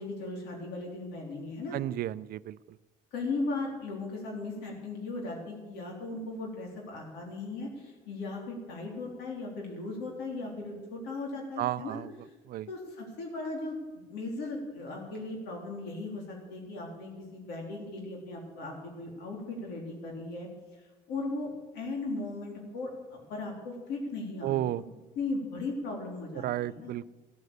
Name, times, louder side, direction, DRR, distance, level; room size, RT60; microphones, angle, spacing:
voice 1, 0.0-1.8 3.1-12.0 12.2-12.3 12.7-20.5 20.8-24.7 25.2-26.9, left 3 dB, 85° left, -1 dB, 3.5 m, -37 dB
voice 2, 1.7-2.6 11.6-12.1 12.5-12.7 24.4-24.8 26.3-27.0, right 13 dB, 65° right, 17 dB, 0.5 m, -32 dB
15.0 x 9.3 x 8.2 m, 1.2 s
cardioid pair, 110°, 17 cm